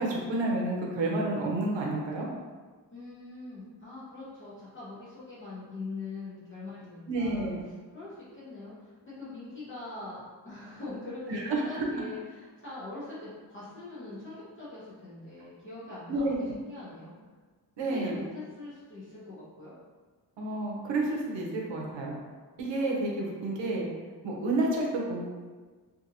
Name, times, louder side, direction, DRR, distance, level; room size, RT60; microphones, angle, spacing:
voice 1, 0.0-2.3 7.1-7.6 11.3-11.9 16.1-16.6 17.8-18.2 20.4-22.2 22.6-23.9 24.2-25.3, right 2 dB, 90° right, -2 dB, 0.7 m, -30 dB
voice 2, 2.9-17.2 17.8-19.7, left 2 dB, 30° left, -11 dB, 0.7 m, -43 dB
2.7 x 2.6 x 2.6 m, 1.4 s
wide cardioid pair, 180°, 44 cm